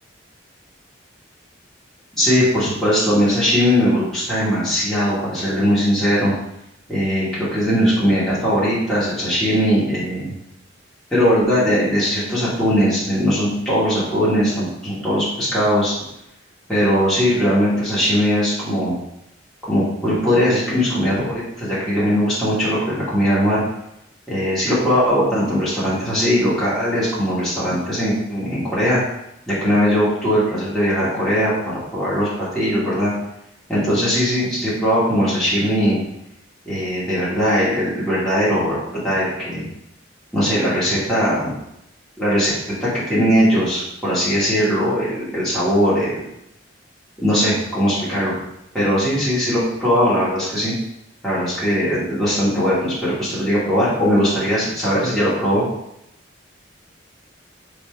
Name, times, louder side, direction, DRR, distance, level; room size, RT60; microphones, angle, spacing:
voice 1, 2.1-6.3 6.9-10.3 11.1-15.9 16.7-18.9 19.7-23.6 24.3-29.0 29.5-31.5 31.9-33.1 33.7-36.0 36.6-38.8 39.0-39.7 40.3-41.5 42.2-42.5 42.8-46.2 47.2-48.3 48.7-50.7 51.2-55.7, equal, ahead, -10 dB, 1.2 m, -19 dB
3.4 x 2.6 x 4.3 m, 0.83 s
head